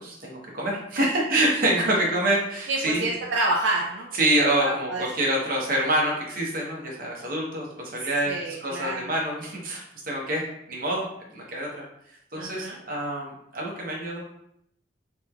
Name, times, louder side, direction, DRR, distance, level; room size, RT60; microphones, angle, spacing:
voice 1, 0.0-3.1 4.1-10.4 10.7-11.1 11.3-11.8 12.3-14.2, right 1 dB, 55° right, -2 dB, 0.9 m, -26 dB
voice 2, 2.7-4.1 4.6-5.0 8.3-9.1 12.3-12.8, right 2 dB, 80° right, -2 dB, 0.5 m, -28 dB
3.5 x 3.0 x 2.3 m, 0.73 s
head